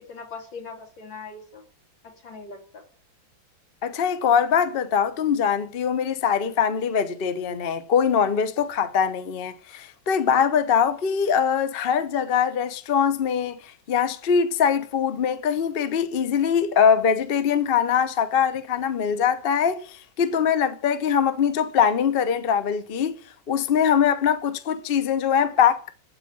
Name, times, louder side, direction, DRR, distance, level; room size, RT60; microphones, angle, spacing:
voice 1, 0.1-1.6 2.2-2.8, left 4 dB, 80° left, 3.4 m, -40 dB
voice 2, 3.8-13.6 13.9-23.1 23.5-25.9, left 7 dB, 45° left, 0.7 m, -22 dB
12.0 x 5.0 x 8.6 m
omnidirectional pair, 2.0 m